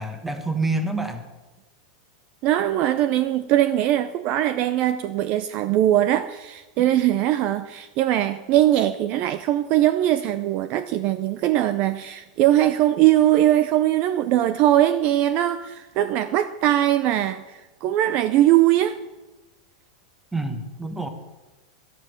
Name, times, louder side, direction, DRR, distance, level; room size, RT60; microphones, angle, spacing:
voice 1, 0.0-1.3 20.3-21.1, right 2 dB, 5° right, 1.2 m, -27 dB
voice 2, 2.4-19.0, right 13 dB, 35° right, 0.5 m, -21 dB
12.5 x 12.0 x 6.4 m
supercardioid pair, 165°, 4 cm